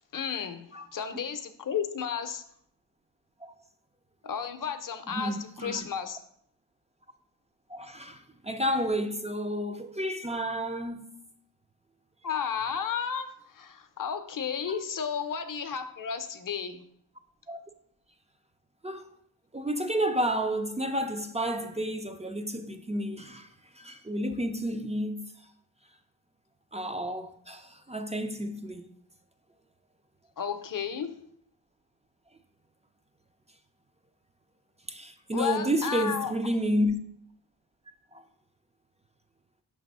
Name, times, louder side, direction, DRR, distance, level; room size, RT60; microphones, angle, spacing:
voice 1, 0.1-2.4 4.2-6.2 12.2-16.8 30.4-31.1 35.3-36.3, left 7 dB, 50° left, 0.6 m, -33 dB
voice 2, 5.1-5.9 7.7-8.2 8.4-11.2 17.5-17.6 18.8-19.0 19.5-23.5 23.8-25.3 26.7-28.9 34.9-36.9 38.1-38.2, equal, 15° right, 0.3 m, -31 dB
5.8 x 3.4 x 5.3 m
wide cardioid pair, 105°, 42 cm